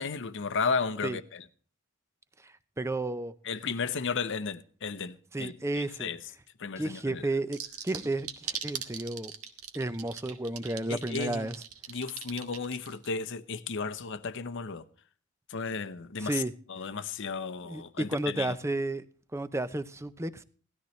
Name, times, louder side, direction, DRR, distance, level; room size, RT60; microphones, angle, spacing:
voice 1, 0.0-1.4 3.4-6.2 6.6-7.2 10.9-11.5 11.9-14.8 15.5-16.4 16.7-18.6, left 5 dB, 55° left, 0.7 m, -34 dB
voice 2, 2.4-3.3 5.3-6.1 6.8-7.6 7.8-9.3 9.7-11.5 16.2-16.5 17.7-19.1 19.3-20.4, right 2 dB, 15° right, 0.6 m, -32 dB
sound 1, 7.5-13.1, right 8 dB, 80° right, 1.5 m, -39 dB
17.5 x 13.0 x 3.2 m
head